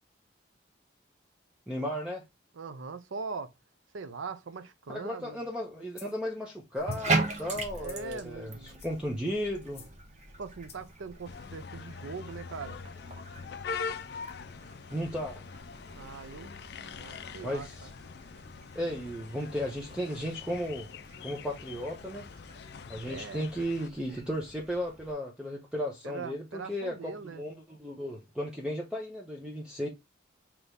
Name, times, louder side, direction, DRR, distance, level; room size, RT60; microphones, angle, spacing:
voice 1, 1.7-2.2 4.9-9.8 14.9-15.4 17.4-17.9 18.7-20.9 21.2-22.3 22.9-29.9, equal, 5° right, 0.6 m, -35 dB
voice 2, 2.5-3.5 3.9-5.4 7.7-8.8 10.4-12.8 16.0-16.5 16.8-17.9 23.0-23.5 26.0-27.4, right 4 dB, 85° right, 0.6 m, -41 dB
sound 1, 5.9-6.2 6.7-7.1 7.8-8.2 8.6-9.1 9.7-10.0 10.7-10.9, left 7 dB, 30° left, 0.7 m, -52 dB
Bathtub (filling or washing), 6.8-25.1, right 3 dB, 35° right, 0.8 m, -40 dB
sound 2, 11.2-23.9, left 6 dB, 55° left, 0.3 m, -43 dB
3.9 x 3.0 x 3.4 m
head